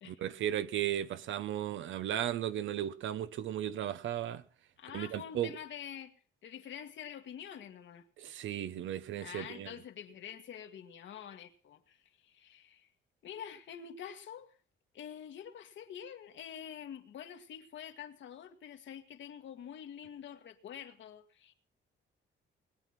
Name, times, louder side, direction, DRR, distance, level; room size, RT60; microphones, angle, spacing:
voice 1, 0.0-4.4 4.9-5.5 8.2-9.7, right 11 dB, 75° right, 0.9 m, -35 dB
voice 2, 4.8-6.1 6.4-8.0 9.2-12.9 13.2-14.5 14.9-21.5, left 9 dB, 70° left, 1.7 m, -47 dB
20.0 x 9.2 x 5.9 m
cardioid pair, 90°, 20 cm